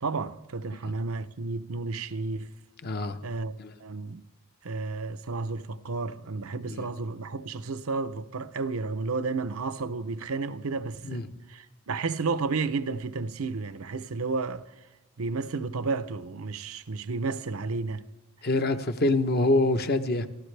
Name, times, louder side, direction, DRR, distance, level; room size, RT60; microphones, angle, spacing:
voice 1, 0.0-2.5 3.2-3.5 3.8-4.3 4.6-11.2 11.5-14.7 15.2-18.1, right 4 dB, 85° right, 0.7 m, -32 dB
voice 2, 2.8-3.2 3.6-3.7 6.7-6.9 11.0-11.2 18.4-20.3, left 2 dB, 50° left, 0.9 m, -25 dB
27.5 x 13.0 x 3.3 m
head